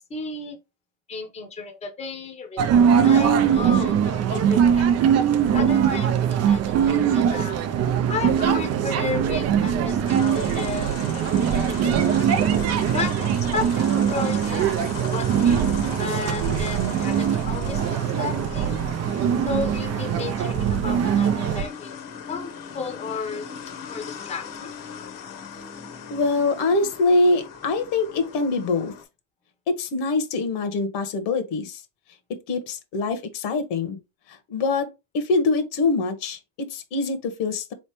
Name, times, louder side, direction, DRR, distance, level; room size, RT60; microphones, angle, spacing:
voice 1, 0.1-0.6 1.1-4.9 5.5-7.6 8.1-11.0 11.5-12.4 12.9-14.7 15.1-15.6 16.0-18.8 19.5-21.9 22.3-23.5 23.9-24.7, left 4 dB, 15° left, 0.8 m, -33 dB
sound 1, 2.6-21.6, right 8 dB, 35° right, 0.5 m, -21 dB
sound 2, 10.0-29.0, left 7 dB, 45° left, 1.0 m, -39 dB
voice 2, 26.1-28.9 29.7-31.8 32.5-34.0 34.3-37.7, left 3 dB, 60° left, 1.2 m, -24 dB
4.1 x 3.2 x 3.0 m
supercardioid pair, 130°, 46 cm